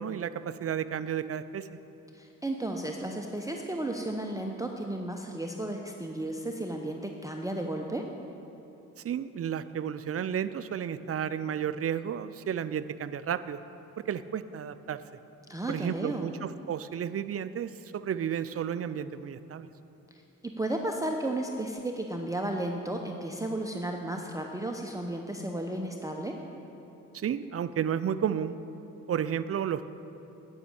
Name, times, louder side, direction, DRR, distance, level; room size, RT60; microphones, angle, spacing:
voice 1, 0.0-1.7 9.0-13.6 14.1-15.0 15.7-19.7 27.1-28.5 29.1-29.9, right 8 dB, 40° right, 14 dB, 0.4 m, -32 dB
voice 2, 2.1-8.1 15.5-16.3 20.4-26.4, right 1 dB, 10° right, 2 dB, 0.7 m, -33 dB
9.4 x 6.2 x 7.0 m, 2.9 s
supercardioid pair, 45°, 35 cm